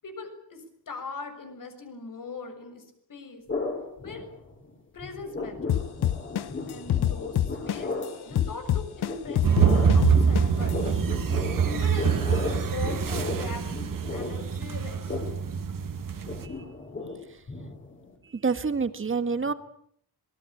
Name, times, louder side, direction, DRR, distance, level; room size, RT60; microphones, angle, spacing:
voice 1, 0.0-2.8 3.1-3.4 4.0-4.2 4.9-5.8 6.7-7.9 8.2-10.8 11.6-13.7 14.1-15.1, left 4 dB, 55° left, 7 dB, 6.7 m, -40 dB
sound 1, 3.5-4.7 5.0-18.1, left 3 dB, 30° left, 6.4 m, -35 dB
sound 2, 5.7-8.0 8.4-10.7, left 11 dB, 80° left, 1.1 m, -25 dB
sound 3, 9.4-16.5, right 6 dB, 55° right, 2.6 m, -25 dB
voice 2, 18.3-19.5, right 5 dB, 30° right, 11 dB, 1.8 m, -27 dB
26.5 x 21.0 x 8.7 m, 0.66 s
wide cardioid pair, 170°, 38 cm